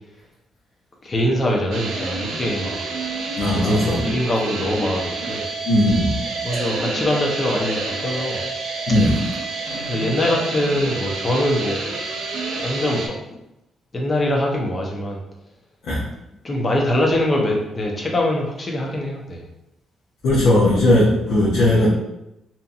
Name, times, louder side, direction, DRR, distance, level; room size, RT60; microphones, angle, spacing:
voice 1, 1.0-2.8 3.6-5.5 6.4-8.4 9.9-11.8 12.1-12.3 12.6-13.1 13.9-15.2 16.4-19.4 21.7-21.9, left 1 dB, 30° left, -1 dB, 0.7 m, -23 dB
sound 1, 1.7-13.1, right 3 dB, 85° right, 0.5 m, -28 dB
voice 2, 3.4-4.1 5.6-6.2 8.9-9.2 15.9-16.0 20.2-21.9, left 1 dB, 70° left, -7 dB, 0.7 m, -17 dB
2.7 x 2.5 x 2.4 m, 0.87 s
cardioid pair, 90°, 0 cm